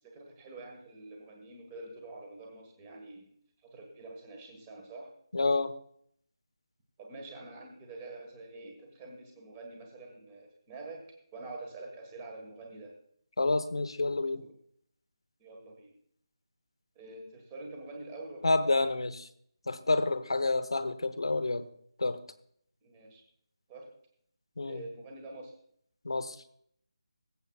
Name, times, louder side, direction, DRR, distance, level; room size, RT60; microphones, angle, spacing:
voice 1, 0.0-3.3 3.6-5.1 7.0-11.0 11.3-12.9 14.3-14.5 15.4-15.9 16.9-18.9 22.8-23.2 23.7-23.9 24.6-25.5, right 2 dB, 10° right, 1 dB, 1.5 m, -46 dB
voice 2, 5.3-5.7 13.4-14.4 18.4-19.2 19.7-21.7 22.0-22.2 24.6-24.8 26.0-26.4, left 3 dB, 70° left, 11 dB, 1.0 m, -28 dB
22.5 x 8.1 x 2.4 m, 0.66 s
figure-of-eight pair, 175°, 3 cm